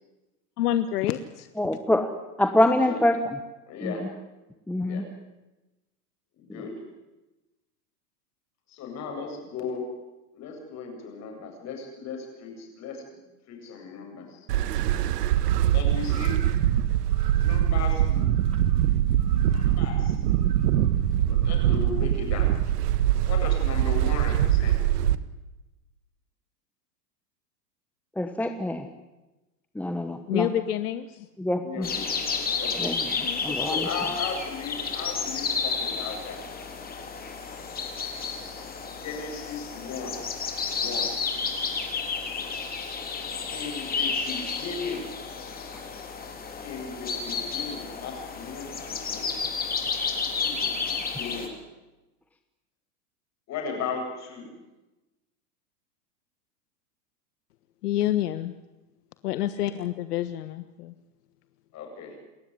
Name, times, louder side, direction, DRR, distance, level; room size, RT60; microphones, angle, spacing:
voice 1, 0.6-1.5 30.3-31.3 33.2-33.7 57.8-58.5 59.2-60.9, left 12 dB, 70° left, 12 dB, 1.4 m, -28 dB
voice 2, 1.6-2.1 2.4-3.4 3.8-3.9 4.7-5.0 6.5-6.6 28.2-28.9 29.7-30.5 31.4-31.9 32.8-33.9 45.7-45.8, left 1 dB, 5° left, 7 dB, 1.2 m, -25 dB
voice 3, 3.7-4.1 4.8-5.1 6.4-6.7 8.7-9.9 10.3-13.2 13.5-14.5 15.7-16.4 17.4-18.3 19.3-20.2 21.2-22.5 23.2-24.8 31.6-32.9 33.6-36.4 38.8-40.2 40.7-41.1 43.5-45.1 46.6-49.4 50.3-51.5 53.5-54.5 59.5-59.7 61.7-62.1, left 5 dB, 35° left, 2 dB, 8.0 m, -36 dB
sound 1, 14.5-25.2, right 11 dB, 70° right, 1.5 m, -23 dB
sound 2, 31.8-51.5, left 5 dB, 20° left, 3.6 m, -31 dB
29.0 x 13.5 x 9.8 m, 1.1 s
hypercardioid pair, 130°, 48 cm